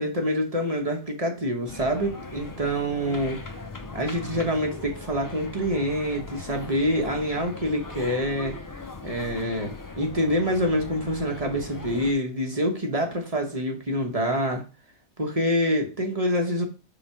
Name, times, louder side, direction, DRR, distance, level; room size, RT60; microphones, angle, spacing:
voice 1, 0.0-3.4 3.9-8.6 9.0-14.6 15.2-16.6, equal, 30° right, 2 dB, 1.2 m, -26 dB
sound 1, 1.6-12.1, left 3 dB, 25° left, 0.5 m, -39 dB
5.0 x 3.8 x 5.7 m, 0.33 s
omnidirectional pair, 1.4 m